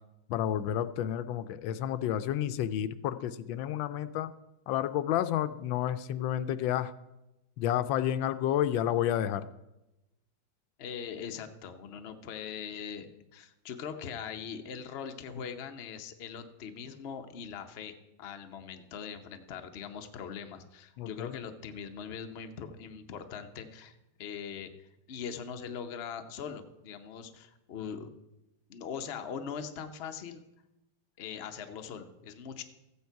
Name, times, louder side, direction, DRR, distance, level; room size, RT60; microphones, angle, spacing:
voice 1, 0.3-4.3 4.7-6.9 7.6-9.5 21.0-21.4, left 11 dB, 85° left, 13 dB, 1.3 m, -30 dB
voice 2, 10.8-13.1 13.3-28.1 28.7-30.4 31.2-32.6, left 7 dB, 50° left, 6 dB, 0.7 m, -41 dB
14.5 x 8.6 x 4.6 m, 0.95 s
omnidirectional pair, 2.1 m